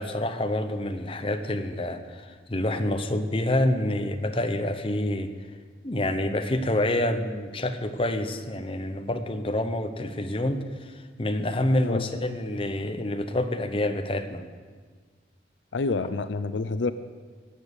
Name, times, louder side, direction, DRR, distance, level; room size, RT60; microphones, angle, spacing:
voice 1, 0.0-5.3 5.8-14.4, left 1 dB, 30° left, 7 dB, 0.8 m, -27 dB
voice 2, 15.7-16.9, left 3 dB, 85° left, 12 dB, 0.6 m, -28 dB
19.5 x 7.3 x 6.6 m, 1.5 s
head